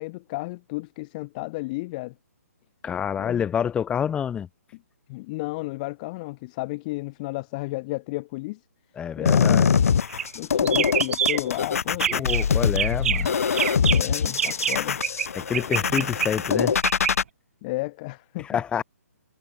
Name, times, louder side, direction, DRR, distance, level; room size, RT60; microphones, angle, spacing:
voice 1, 0.0-2.1 3.2-3.5 5.1-8.6 9.2-10.0 10.3-12.3 13.8-15.0 17.6-18.6, left 23 dB, 30° left, 1.2 m, -33 dB
voice 2, 2.8-4.5 8.9-9.7 12.1-13.3 15.4-16.8 18.4-18.8, left 8 dB, 10° left, 3.4 m, -27 dB
sound 1, 9.3-17.2, left 7 dB, 65° left, 3.1 m, -23 dB
sound 2, 10.1-10.4 10.7-11.6 11.9-12.4 12.8-15.3 15.5-17.1, right 9 dB, 55° right, 0.7 m, -27 dB
hypercardioid pair, 145°, 8 cm